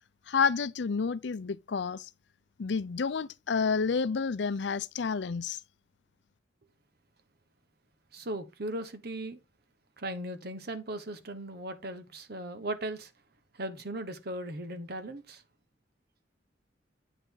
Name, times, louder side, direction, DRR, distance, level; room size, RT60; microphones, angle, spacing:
voice 1, 0.3-2.1 2.6-5.6, left 5 dB, 70° left, 0.5 m, -29 dB
voice 2, 8.1-9.4 10.0-13.1 13.5-15.4, right 1 dB, 60° right, 1.3 m, -38 dB
8.8 x 5.1 x 3.9 m
head